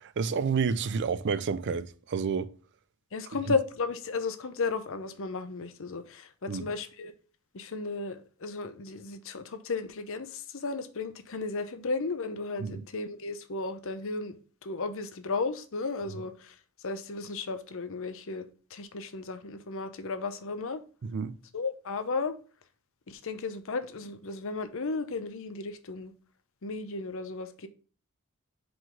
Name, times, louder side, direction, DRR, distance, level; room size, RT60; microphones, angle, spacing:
voice 1, 0.0-2.5 6.5-6.6 12.6-12.8 21.0-21.3, right 5 dB, 50° right, 0.4 m, -30 dB
voice 2, 3.1-7.1 7.5-14.4 14.6-16.5 16.8-18.4 18.7-20.8 21.5-22.4 23.1-26.1 26.6-27.7, left 4 dB, 60° left, 0.7 m, -34 dB
5.1 x 3.9 x 5.7 m
head